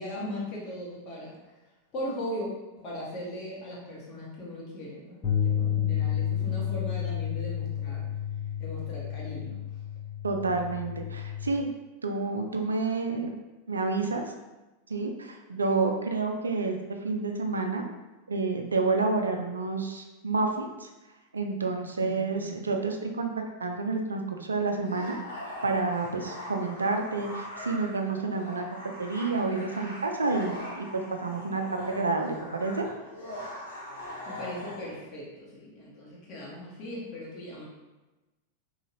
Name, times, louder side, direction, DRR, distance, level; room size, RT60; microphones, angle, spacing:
voice 1, 0.0-1.4 1.9-2.5 2.8-8.1 8.6-9.6 22.0-22.5 34.2-37.6, left 1 dB, 35° left, -5 dB, 1.3 m, -38 dB
sound 1, 5.2-11.5, left 9 dB, 20° left, 0.8 m, -31 dB
voice 2, 10.2-11.7 12.0-13.3 13.7-14.2 14.9-16.8 17.0-17.8 18.3-20.9 21.3-25.2 25.6-28.6 29.0-32.9, right 3 dB, 75° right, 4 dB, 0.4 m, -29 dB
sound 2, 24.8-35.0, left 1 dB, 70° left, 1.0 m, -41 dB
3.8 x 3.1 x 2.8 m, 1.1 s
figure-of-eight pair, 90°, 0 cm